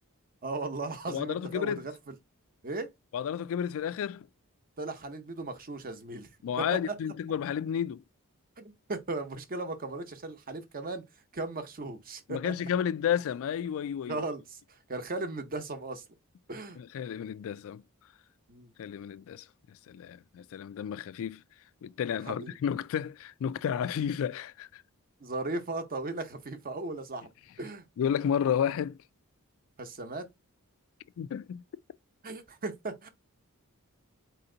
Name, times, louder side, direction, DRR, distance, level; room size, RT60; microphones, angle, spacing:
voice 1, 0.4-2.1 2.6-2.9 4.8-6.3 6.6-6.9 8.6-11.0 11.3-12.5 14.1-16.0 16.5-16.8 18.5-18.7 22.3-22.5 25.2-27.3 27.6-27.8 29.8-30.3 32.2-33.1, right 2 dB, 40° right, 0.8 m, -37 dB
voice 2, 1.1-1.9 3.1-4.3 6.4-8.0 12.3-14.2 16.8-17.8 18.8-19.4 19.9-21.4 21.8-24.8 28.0-29.0 31.2-31.6, left 8 dB, 65° left, 0.3 m, -31 dB
4.3 x 2.8 x 3.8 m
head